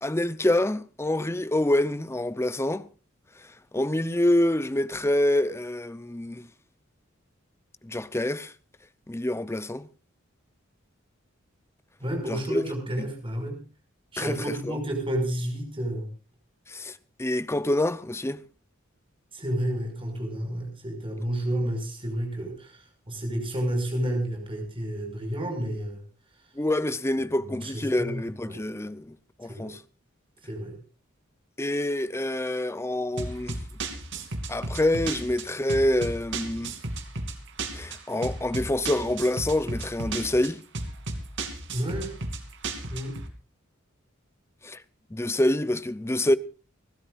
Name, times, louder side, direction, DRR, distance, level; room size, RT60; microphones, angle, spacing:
voice 1, 0.0-2.9 3.7-6.5 7.8-8.5 9.1-9.9 12.3-12.6 13.0-13.1 14.2-14.8 16.7-18.4 26.6-29.8 31.6-33.6 34.5-36.7 37.7-40.6 44.6-44.8 45.1-46.4, left 1 dB, 15° left, 0.7 m, -26 dB
voice 2, 12.0-13.6 14.1-16.1 19.3-22.8 23.1-26.0 27.5-28.1 28.5-28.6 29.5-29.7 30.5-30.8 41.7-42.1 42.9-43.2, right 1 dB, 25° right, 5.8 m, -30 dB
sound 1, 33.2-43.3, right 2 dB, 65° right, 2.7 m, -34 dB
30.0 x 12.5 x 2.5 m
head